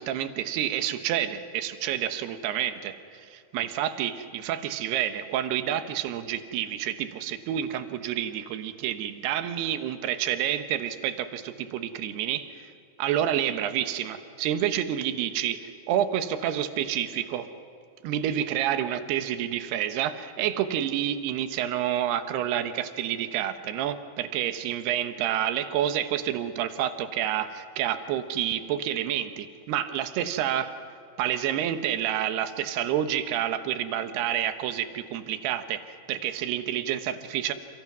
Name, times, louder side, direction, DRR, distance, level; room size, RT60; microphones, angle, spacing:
voice 1, 0.0-12.7 13.0-17.5 18.0-30.8 31.2-37.5, right 10 dB, 70° right, 9 dB, 2.9 m, -29 dB
29.0 x 28.0 x 6.2 m, 2.7 s
omnidirectional pair, 5.4 m